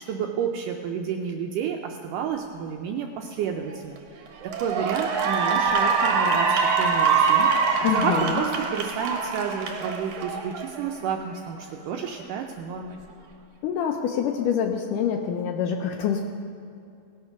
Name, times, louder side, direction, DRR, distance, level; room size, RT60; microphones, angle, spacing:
voice 1, 0.0-7.7 7.9-13.0, right 7 dB, 80° right, 3 dB, 1.9 m, -31 dB
Cheering / Applause, 3.7-4.0 4.4-10.9, right 5 dB, 65° right, 1.7 m, -24 dB
voice 2, 7.8-8.4 13.6-16.3, left 7 dB, 80° left, 3 dB, 2.0 m, -26 dB
18.0 x 6.7 x 5.8 m, 2.5 s
omnidirectional pair, 4.3 m